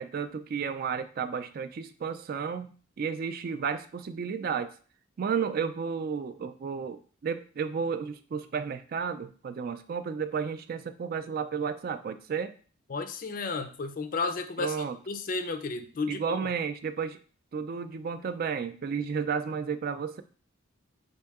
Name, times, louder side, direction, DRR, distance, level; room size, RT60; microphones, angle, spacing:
voice 1, 0.0-2.7 3.0-4.7 5.2-12.5 14.6-15.0 16.1-17.2 17.5-20.2, right 6 dB, 45° right, 10 dB, 0.3 m, -32 dB
voice 2, 12.9-14.8 15.1-16.5, left 4 dB, 40° left, 9 dB, 0.4 m, -33 dB
5.4 x 2.7 x 3.5 m, 0.40 s
head